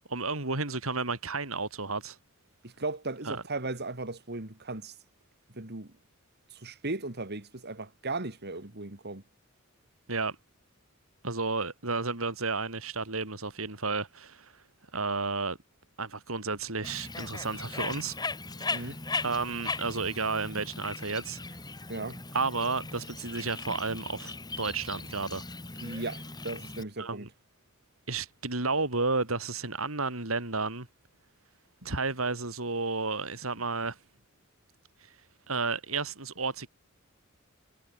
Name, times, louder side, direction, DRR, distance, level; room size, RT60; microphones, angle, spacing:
voice 1, 0.1-2.2 3.2-3.4 10.1-10.4 11.2-14.5 14.9-15.6 16.0-18.2 18.6-18.9 19.2-21.4 22.3-25.4 25.8-26.0 27.0-27.3 28.1-30.9 31.8-34.0 35.5-36.7, right 3 dB, 75° right, 4.1 m, -32 dB
voice 2, 2.6-5.0 5.5-5.9 6.5-9.2 18.7-19.0 21.9-22.2 25.8-27.3, right 2 dB, 50° right, 2.8 m, -36 dB
Bird, 16.8-26.8, left 3 dB, 20° left, 3.1 m, -38 dB
head